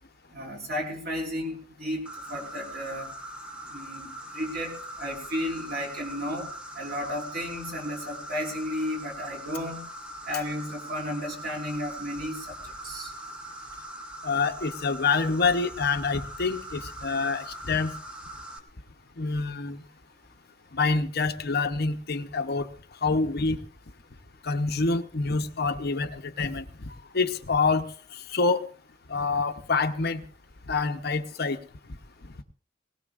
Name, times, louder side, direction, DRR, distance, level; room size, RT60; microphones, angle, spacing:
voice 1, 0.3-2.0 2.3-3.1 3.7-6.5 6.7-9.8 10.3-13.1, equal, 55° right, 0 dB, 4.9 m, -33 dB
Insect, 2.1-18.6, right 1 dB, 5° right, 1.1 m, -41 dB
voice 2, 14.2-17.9 19.2-19.8 20.7-22.7 23.0-23.6 24.4-27.8 28.1-28.6 29.1-30.2 30.7-31.6, left 4 dB, 55° left, 7 dB, 0.9 m, -26 dB
19.5 x 19.0 x 2.5 m, 0.41 s
head